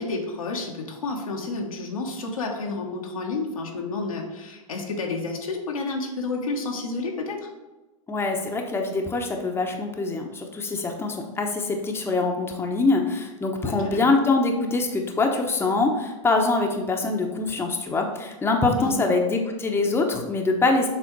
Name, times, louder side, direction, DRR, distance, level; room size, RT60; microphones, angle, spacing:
voice 1, 0.0-7.5 13.6-14.1 18.8-19.1, left 3 dB, 85° left, 0 dB, 1.4 m, -30 dB
voice 2, 8.1-20.9, left 3 dB, 15° left, 2 dB, 0.9 m, -24 dB
7.3 x 3.6 x 4.6 m, 1.1 s
hypercardioid pair, 105°, 17 cm